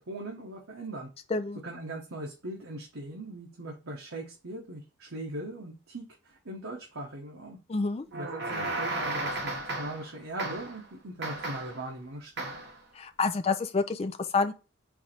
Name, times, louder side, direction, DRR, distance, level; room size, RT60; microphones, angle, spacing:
voice 1, 0.1-1.1 1.6-7.6 8.1-12.5, right 1 dB, 80° right, 1.0 m, -40 dB
voice 2, 7.7-8.1 13.0-14.5, left 4 dB, 30° left, 0.4 m, -28 dB
sound 1, 8.1-10.1 10.4-10.8 11.2-11.8 12.4-12.8, right 2 dB, 55° right, 1.2 m, -34 dB
4.7 x 2.6 x 4.3 m
head